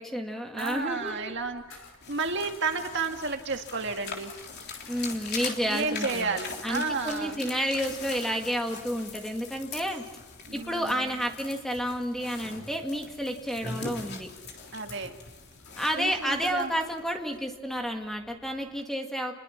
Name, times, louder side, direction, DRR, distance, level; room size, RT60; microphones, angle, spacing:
voice 1, 0.0-1.3 4.9-10.0 10.5-14.3 15.8-19.3, equal, ahead, 2 dB, 2.0 m, -31 dB
voice 2, 0.5-1.8 2.1-4.3 5.7-7.4 10.5-11.0 14.7-15.2 16.0-16.7, right 4 dB, 55° right, 4 dB, 2.0 m, -31 dB
sound 1, 0.6-18.8, left 5 dB, 80° left, 6.6 m, -55 dB
sound 2, 2.0-16.5, left 4 dB, 50° left, 3.5 m, -41 dB
29.5 x 21.5 x 5.9 m, 1.2 s
head